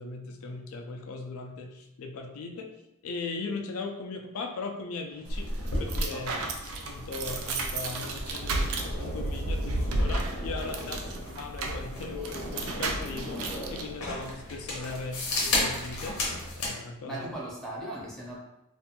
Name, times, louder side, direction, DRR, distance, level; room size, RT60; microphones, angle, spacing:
voice 1, 0.0-2.7 3.0-5.5 5.8-6.3 6.9-11.0 11.4-16.2 16.6-17.3, left 4 dB, 75° left, 3 dB, 0.3 m, -38 dB
sound 1, 5.1-11.2, left 1 dB, 45° left, 0.7 m, -53 dB
sound 2, 5.2-13.8, right 2 dB, 70° right, 0.4 m, -33 dB
sound 3, 5.3-16.8, left 1 dB, 90° left, 0.8 m, -35 dB
voice 2, 6.1-6.5 11.0-11.2 17.1-18.4, right 1 dB, ahead, -6 dB, 0.5 m, -38 dB
2.5 x 2.2 x 2.8 m, 0.90 s
head